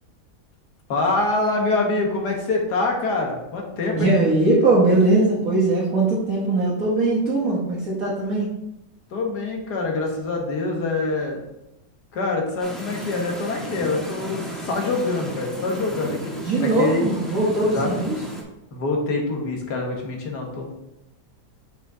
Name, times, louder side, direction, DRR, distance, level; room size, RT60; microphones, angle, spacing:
voice 1, 0.9-4.1 9.1-11.4 12.1-16.3 16.6-17.1 17.6-17.9 18.7-20.7, left 3 dB, 70° left, 1 dB, 1.8 m, -25 dB
voice 2, 3.9-8.5 16.4-18.2, right 2 dB, 55° right, -6 dB, 1.7 m, -20 dB
sound 1, 12.6-18.4, right 1 dB, ahead, 1.1 m, -34 dB
6.3 x 5.1 x 3.8 m, 0.90 s
omnidirectional pair, 1.8 m